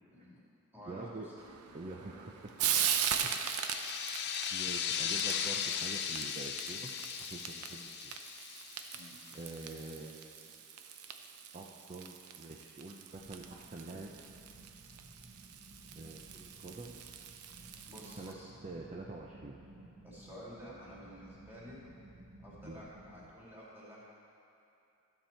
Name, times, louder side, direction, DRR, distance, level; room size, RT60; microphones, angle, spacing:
voice 1, 0.1-0.4 0.7-1.3 1.8-2.0 8.9-9.2 17.9-18.5 20.0-21.8 22.4-24.0, equal, 10° right, -8 dB, 2.6 m, -51 dB
voice 2, 0.9-1.3 1.7-2.5 3.2-3.6 4.5-6.9 7.2-8.2 9.3-10.6 11.5-14.1 15.9-17.0 18.1-18.4 18.6-19.6 22.6-22.8, right 2 dB, 30° right, -1 dB, 0.5 m, -46 dB
Frying (food), 1.4-18.3, right 8 dB, 75° right, 0.6 m, -40 dB
sound 1, 3.3-9.6, left 8 dB, 45° left, 0.4 m, -37 dB
sound 2, 13.1-23.3, right 1 dB, 50° right, 1.3 m, -56 dB
13.0 x 7.3 x 4.4 m, 2.7 s
head